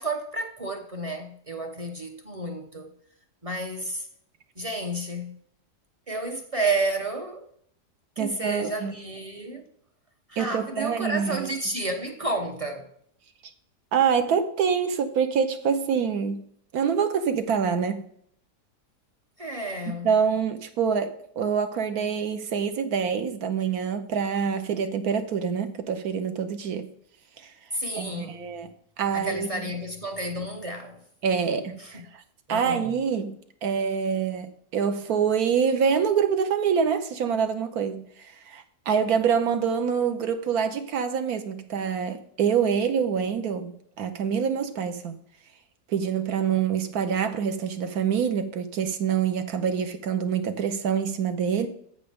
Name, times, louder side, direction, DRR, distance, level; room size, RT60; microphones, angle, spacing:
voice 1, 0.0-2.9 3.4-4.1 4.6-5.4 6.1-7.4 8.2-9.7 10.3-12.9 19.4-20.1 27.7-28.5 29.1-31.0 31.8-32.0 32.5-32.9, right 2 dB, 30° right, 0.8 m, -31 dB
voice 2, 8.2-8.9 10.4-11.5 13.9-16.4 16.7-18.0 20.0-26.9 27.4-27.5 28.0-28.7 29.0-29.6 31.2-32.2 32.5-45.2 45.9-51.7, right 7 dB, 70° right, 1.2 m, -26 dB
14.0 x 5.4 x 3.6 m
omnidirectional pair, 1.7 m